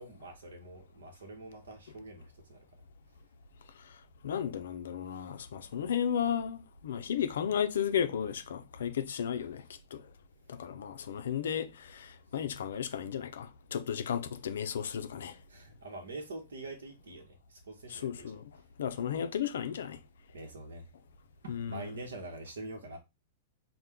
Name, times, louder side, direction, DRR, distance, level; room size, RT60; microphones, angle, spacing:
voice 1, 0.0-2.6 15.5-18.4 20.3-20.8 21.4-23.0, right 2 dB, 75° right, 0.8 m, -45 dB
voice 2, 4.2-9.6 9.9-10.0 10.5-15.4 17.9-18.4 18.8-20.0 21.5-21.9, left 8 dB, 75° left, 0.5 m, -34 dB
4.3 x 2.1 x 3.4 m
hypercardioid pair, 105°, 0 cm